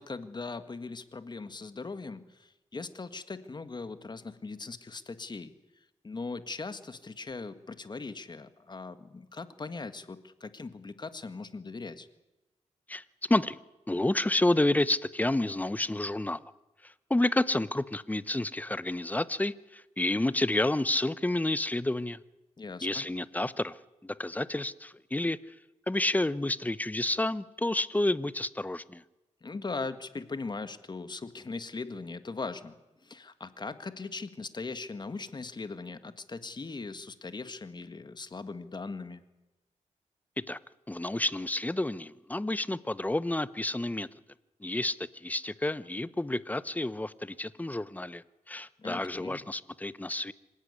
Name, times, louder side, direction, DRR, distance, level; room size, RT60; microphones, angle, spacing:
voice 1, 0.0-5.5 6.0-12.1 22.6-23.1 29.4-32.7 33.0-39.2 48.8-49.4, left 3 dB, 35° left, 11 dB, 1.7 m, -40 dB
voice 2, 12.9-13.6 13.9-16.4 16.8-22.2 22.8-23.8 24.0-25.4 25.9-29.0 40.4-40.6 40.9-44.1 44.6-50.3, left 1 dB, 10° left, 16 dB, 0.8 m, -30 dB
25.5 x 16.5 x 9.8 m, 1.0 s
wide cardioid pair, 95°, 13 cm